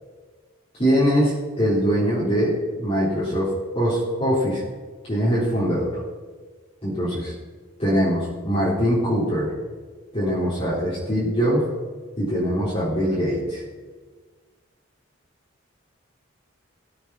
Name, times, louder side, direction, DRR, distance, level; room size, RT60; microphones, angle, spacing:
voice 1, 0.7-4.6 5.0-6.0 6.8-7.3 7.8-9.5 10.1-11.7 12.2-13.6, equal, 30° left, -10 dB, 4.1 m, -22 dB
18.5 x 8.5 x 4.3 m, 1.4 s
head